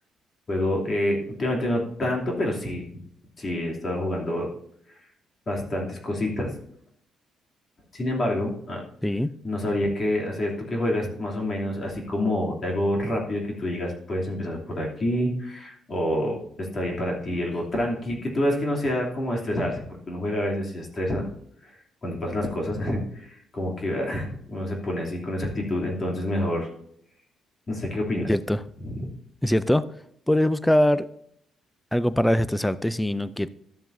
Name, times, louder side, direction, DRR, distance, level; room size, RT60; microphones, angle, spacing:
voice 1, 0.5-2.8 3.4-4.5 5.5-6.5 7.9-8.8 9.4-21.3 21.6-21.7 22.0-26.7 27.7-28.3 28.8-29.1, left 1 dB, 40° left, -1 dB, 2.9 m, -27 dB
voice 2, 28.3-28.6 29.4-29.9 30.3-31.1 31.9-33.5, left 1 dB, 5° left, 15 dB, 0.4 m, -22 dB
13.0 x 7.4 x 2.7 m, 0.68 s
cardioid pair, 90°, 0 cm